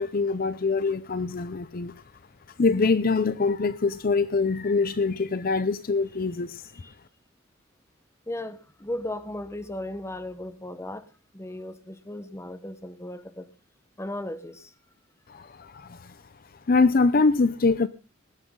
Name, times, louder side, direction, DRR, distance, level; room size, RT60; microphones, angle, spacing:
voice 1, 0.0-1.9 2.6-6.7 15.3-16.1 16.7-17.9, left 4 dB, 45° left, 0.5 m, -24 dB
voice 2, 8.3-11.1 11.3-13.5 14.0-14.7, left 1 dB, 15° left, 1.0 m, -36 dB
19.5 x 9.9 x 3.7 m
head